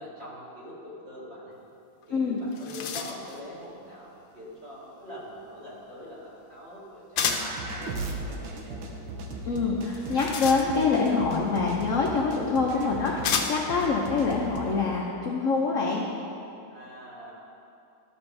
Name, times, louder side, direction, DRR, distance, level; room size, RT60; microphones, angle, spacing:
voice 1, 0.0-1.6 2.1-9.0 16.7-17.3, equal, 30° right, -8 dB, 2.6 m, -44 dB
sound 1, 2.0-2.1 2.4-3.4 7.2-7.6 9.9-11.0 12.1-12.2 13.2-13.8, left 6 dB, 75° left, 1.4 m, -31 dB
sound 2, 7.2-14.8, right 2 dB, 75° right, 1.7 m, -37 dB
voice 2, 9.4-16.0, left 4 dB, 60° left, -2 dB, 0.8 m, -25 dB
14.0 x 6.1 x 3.3 m, 2.6 s
omnidirectional pair, 2.3 m